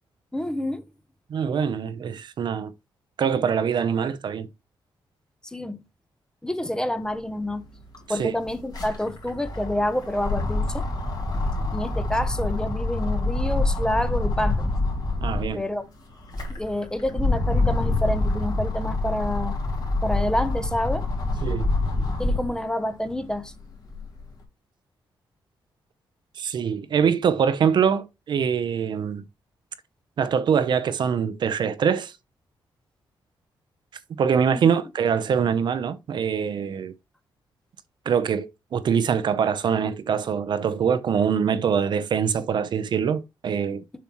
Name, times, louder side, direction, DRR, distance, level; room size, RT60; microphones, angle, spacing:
voice 1, 0.3-0.8 5.4-5.8 6.4-7.7 8.1-10.8 11.7-14.7 15.5-15.8 16.5-19.6 20.0-21.1 22.2-23.5 34.5-34.7, left 1 dB, 10° left, 0.8 m, -28 dB
voice 2, 1.3-2.7 3.2-4.5 8.2-8.3 15.2-15.6 21.4-21.7 26.4-29.2 30.2-32.1 34.2-36.9 38.1-43.8, right 7 dB, 55° right, 0.7 m, -24 dB
sound 1, 7.4-7.5 7.8-15.6 16.1-22.6 23.1-24.2, left 2 dB, 45° left, 2.5 m, -26 dB
7.1 x 5.7 x 3.0 m
wide cardioid pair, 140°, 9 cm